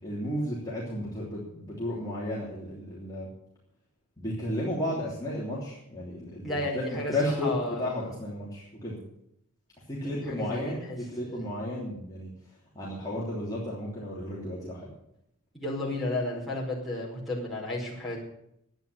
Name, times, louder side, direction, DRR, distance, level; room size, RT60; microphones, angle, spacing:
voice 1, 0.0-3.3 4.2-9.0 9.9-12.3 12.7-14.9, left 1 dB, 15° left, -6 dB, 3.3 m, -33 dB
voice 2, 6.4-7.1 7.4-8.0 10.0-11.8 15.5-18.2, left 1 dB, ahead, -2 dB, 5.0 m, -33 dB
12.0 x 9.5 x 9.7 m, 0.76 s
head